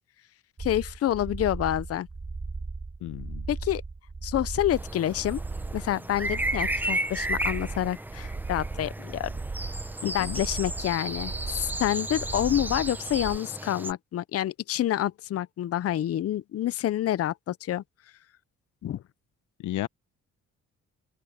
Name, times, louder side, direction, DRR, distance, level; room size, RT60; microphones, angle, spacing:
voice 1, 0.6-2.1 3.5-3.8 4.2-5.4 5.7-9.3 10.0-17.8 18.8-19.0, left 12 dB, 50° left, 0.6 m, -28 dB
sound 1, 0.6-13.4, right 3 dB, 25° right, 3.7 m, -37 dB
voice 2, 3.0-3.5 10.0-10.4 19.6-19.9, left 14 dB, 80° left, 0.9 m, -33 dB
sound 2, 4.7-13.9, right 1 dB, 5° right, 0.9 m, -34 dB
open air
cardioid pair, 90°, 30 cm